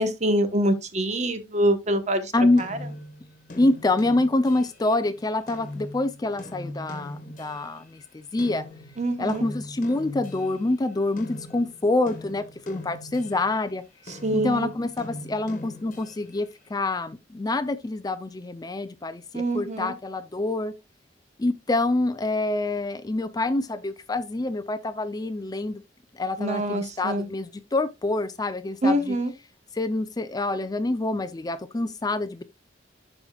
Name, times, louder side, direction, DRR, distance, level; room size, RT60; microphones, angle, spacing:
voice 1, 0.0-2.3 2.6-2.8 9.0-9.4 14.2-14.7 19.3-19.9 26.4-27.3 28.8-29.3, right 1 dB, 40° right, 1.0 m, -25 dB
sound 1, 2.6-7.9 8.4-13.7 14.1-16.5, left 1 dB, 45° left, 1.4 m, -41 dB
voice 2, 3.5-8.6 9.2-13.8 14.3-20.7 21.4-25.8 26.2-29.2 29.7-32.4, left 2 dB, 20° left, 0.4 m, -26 dB
11.0 x 4.9 x 2.3 m
head